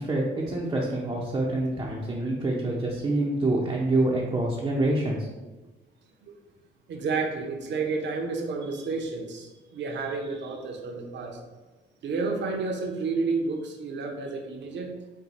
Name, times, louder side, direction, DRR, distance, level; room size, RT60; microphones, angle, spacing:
voice 1, 0.0-5.3, right 2 dB, 20° right, -4 dB, 0.7 m, -26 dB
voice 2, 6.9-11.4 12.0-14.9, right 4 dB, 65° right, 2 dB, 0.8 m, -30 dB
4.6 x 2.2 x 4.0 m, 1.2 s
cardioid pair, 90°, 20 cm